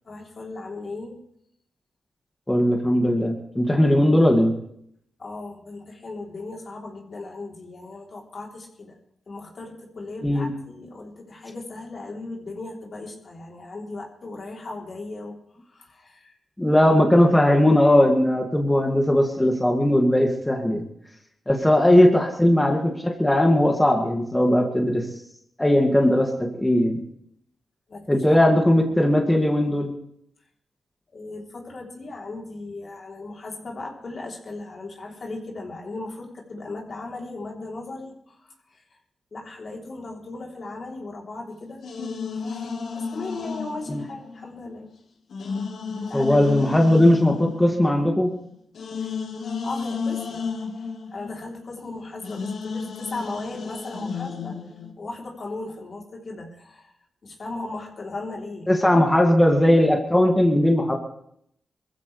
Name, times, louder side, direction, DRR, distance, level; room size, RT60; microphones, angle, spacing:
voice 1, 0.1-1.2 5.2-9.0 9.3-16.4 27.9-28.4 28.8-28.9 31.1-39.0 39.3-41.8 42.3-44.9 46.0-46.3 46.7-46.8 49.0-49.2 49.6-50.5 51.1-54.6 55.0-56.9 57.2-58.8, left 2 dB, 55° left, 0 dB, 3.5 m, -37 dB
voice 2, 2.5-4.5 10.2-10.5 16.6-20.9 21.5-25.0 25.6-27.0 28.1-29.9 43.9-44.0 46.1-48.3 58.7-60.9, left 1 dB, 15° left, 1 dB, 2.3 m, -19 dB
sound 1, 41.8-44.8 45.3-51.9 52.2-54.9, left 5 dB, 75° left, 1.7 m, -33 dB
22.0 x 15.0 x 3.4 m, 0.72 s
cardioid pair, 55°, 0 cm